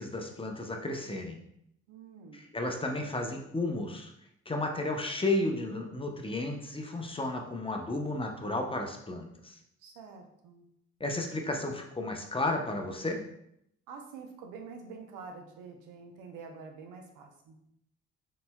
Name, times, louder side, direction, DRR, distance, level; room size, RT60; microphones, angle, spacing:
voice 1, 0.0-1.4 2.3-4.1 4.5-9.6 11.0-13.2, left 2 dB, 15° left, 2 dB, 0.8 m, -33 dB
voice 2, 1.9-2.4 9.8-10.6 13.9-17.6, right 5 dB, 80° right, 4 dB, 0.7 m, -47 dB
4.2 x 4.2 x 2.2 m, 0.75 s
hypercardioid pair, 55°, 31 cm